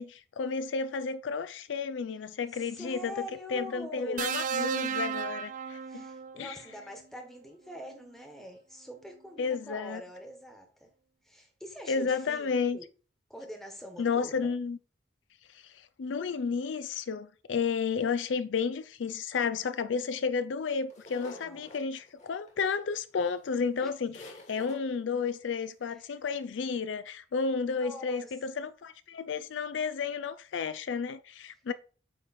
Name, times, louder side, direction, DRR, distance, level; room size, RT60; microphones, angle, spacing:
voice 1, 0.0-3.1 3.5-6.0 6.4-6.6 9.4-10.0 11.9-12.8 14.0-14.8 15.7-24.2 24.5-31.7, left 5 dB, 75° left, 0.4 m, -32 dB
voice 2, 2.5-4.3 5.9-10.9 11.2-12.8 13.3-14.5 21.4-21.7 23.8-23.9 25.8-26.2 27.8-28.3, equal, ahead, 1.2 m, -44 dB
sound 1, 4.2-6.4 7.8-8.0, right 6 dB, 45° right, 0.3 m, -33 dB
sound 2, 20.9-22.8 23.4-23.5 23.8-23.9 24.1-24.8, left 2 dB, 40° left, 1.7 m, -48 dB
8.8 x 3.1 x 4.2 m
head